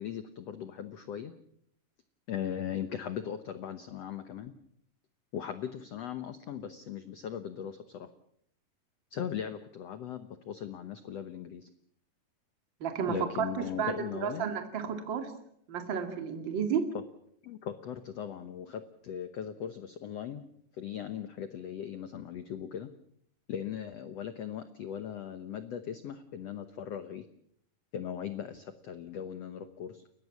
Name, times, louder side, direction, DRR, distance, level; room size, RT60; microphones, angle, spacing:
voice 1, 0.0-1.3 2.3-4.5 5.3-8.1 9.1-11.6 13.1-14.4 17.4-20.4 20.8-22.9 23.5-27.2 27.9-29.9, left 9 dB, 80° left, 10 dB, 1.4 m, -38 dB
voice 2, 12.8-15.3 15.7-16.9, right 7 dB, 35° right, 6 dB, 2.5 m, -32 dB
30.0 x 15.0 x 7.2 m, 0.70 s
omnidirectional pair, 4.4 m